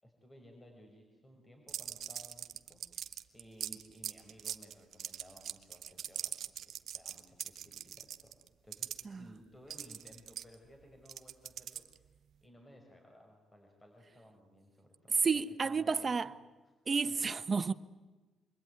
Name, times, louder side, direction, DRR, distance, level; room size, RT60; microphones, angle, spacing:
voice 1, 0.0-2.9 3.3-6.3 6.7-8.4 8.6-12.2 12.4-15.2 15.6-16.3 17.2-17.3, equal, 20° left, 5.8 m, -58 dB
sound 1, 1.7-9.0 9.7-12.1, right 9 dB, 65° right, 1.2 m, -42 dB
voice 2, 15.2-16.3 16.9-17.7, right 5 dB, 35° right, 1.0 m, -31 dB
27.0 x 22.5 x 9.6 m
cardioid pair, 90°, 0 cm